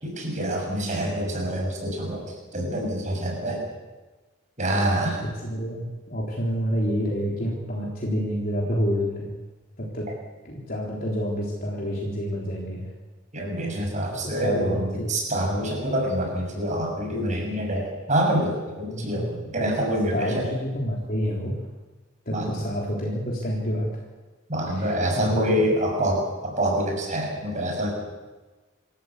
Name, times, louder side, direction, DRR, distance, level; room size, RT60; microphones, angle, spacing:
voice 1, 0.0-2.2 2.5-3.6 4.6-5.2 13.3-20.4 22.3-22.5 24.5-27.9, right 1 dB, 40° right, 1 dB, 6.8 m, -26 dB
voice 2, 5.2-9.3 9.8-10.1 10.4-12.9 14.2-15.1 18.9-19.3 20.1-21.6 22.3-24.0 24.7-25.6, equal, 45° left, -3 dB, 3.8 m, -28 dB
27.0 x 14.0 x 8.4 m, 1.2 s
head